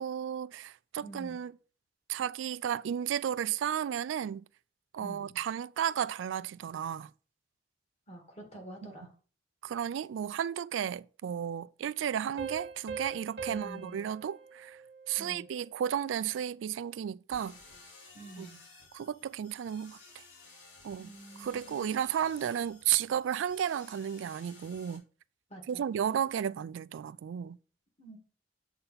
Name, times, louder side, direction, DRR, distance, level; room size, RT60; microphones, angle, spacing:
voice 1, 0.0-1.5 2.1-4.4 4.9-7.1 8.8-8.9 9.6-14.8 15.1-17.6 18.4-18.5 18.9-20.0 20.8-21.1 21.4-25.0 25.7-27.6, right 9 dB, 90° right, 0.3 m, -33 dB
voice 2, 1.0-1.4 5.0-5.4 8.1-9.1 13.5-14.0 15.2-15.5 18.1-18.6 21.0-21.9 25.5-25.8 28.0-28.2, right 2 dB, 35° left, 2.2 m, -47 dB
Piano, 12.4-15.7, right 5 dB, 60° right, 1.4 m, -43 dB
sound 1, 17.3-25.0, left 3 dB, 85° left, 2.8 m, -55 dB
7.9 x 4.1 x 5.5 m
head